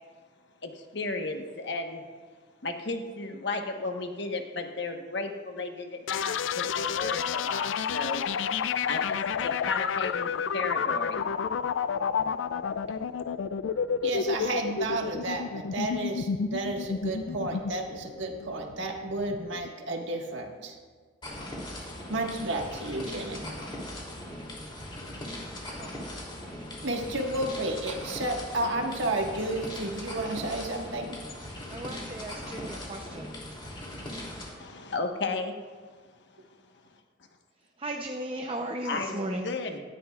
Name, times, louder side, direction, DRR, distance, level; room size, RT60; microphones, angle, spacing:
voice 1, 0.6-2.0 2.6-8.2 8.9-11.2 34.6-35.5 38.8-39.8, left 3 dB, 65° left, 4 dB, 1.2 m, -34 dB
sound 1, 6.1-19.7, left 6 dB, 80° left, 0.4 m, -30 dB
voice 2, 14.0-20.8 21.8-23.5 26.8-31.2, right 2 dB, 75° right, 2 dB, 1.6 m, -32 dB
sound 2, 21.2-34.5, left 1 dB, 25° left, 3.0 m, -39 dB
voice 3, 31.7-33.4 37.8-39.5, right 1 dB, 30° right, 3 dB, 0.7 m, -36 dB
18.0 x 13.5 x 2.4 m, 1.5 s
head